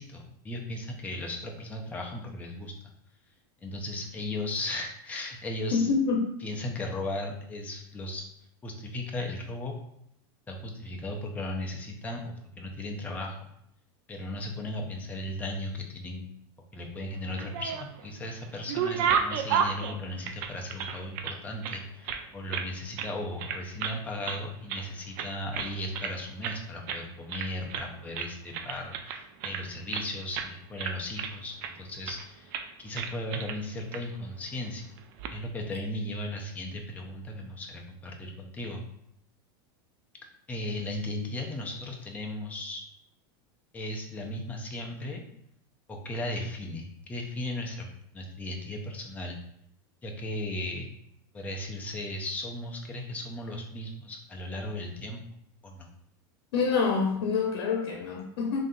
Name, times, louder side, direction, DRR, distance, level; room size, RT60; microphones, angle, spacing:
voice 1, 0.0-2.7 3.6-5.9 6.4-8.3 8.6-9.7 10.5-13.4 14.1-16.3 16.7-34.9 35.3-38.8 40.5-42.8 43.7-45.3 45.9-47.9 48.1-49.4 50.0-50.9 51.3-55.2 55.6-55.9, left 1 dB, 10° left, 1 dB, 0.5 m, -36 dB
voice 2, 5.7-6.3 56.5-58.6, left 5 dB, 80° left, 1 dB, 0.7 m, -26 dB
sound 1, 17.2-18.1 18.4-21.4 21.6-22.7 23.0-23.1 23.4-24.0 24.2-24.9 25.2-26.2 26.4-26.6 26.9-27.0 27.3-27.9 28.2-30.1 30.3-30.5 30.8-31.7 32.1-32.3 32.5-32.7 33.0-33.6 33.9-34.0 35.0-35.3, right 7 dB, 50° right, 0.4 m, -32 dB
3.2 x 2.7 x 3.8 m, 0.73 s
supercardioid pair, 160°, 13 cm